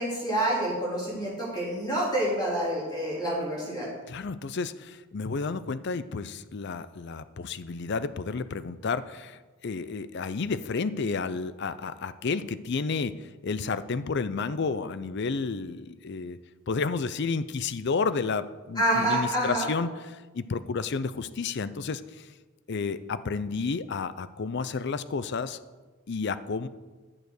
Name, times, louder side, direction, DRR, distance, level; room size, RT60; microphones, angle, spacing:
voice 1, 0.0-3.9 18.7-19.7, right 1 dB, 20° left, -5 dB, 3.5 m, -27 dB
voice 2, 4.1-16.4 16.7-22.3 22.7-25.6 26.1-26.7, left 4 dB, 50° left, 14 dB, 0.5 m, -31 dB
11.0 x 6.7 x 6.5 m, 1.3 s
head